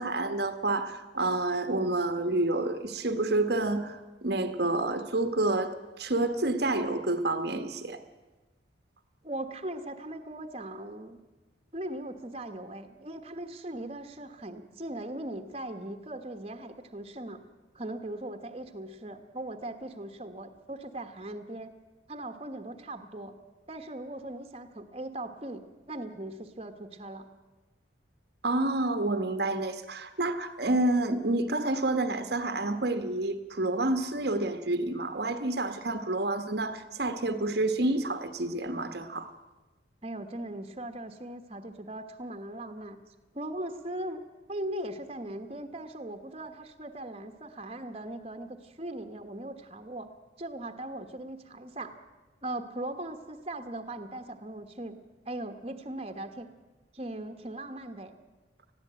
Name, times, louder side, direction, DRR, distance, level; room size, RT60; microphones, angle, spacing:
voice 1, 0.0-8.0 28.4-39.3, right 2 dB, 55° right, 9 dB, 1.2 m, -29 dB
voice 2, 9.2-11.2 11.7-17.4 17.7-21.7 22.1-23.3 23.7-27.3 40.0-43.0 43.3-44.2 44.5-50.1 50.4-51.9 52.4-55.0 55.2-56.5 56.9-58.1, right 1 dB, 30° right, 8 dB, 1.3 m, -39 dB
20.5 x 15.0 x 8.9 m, 1.1 s
head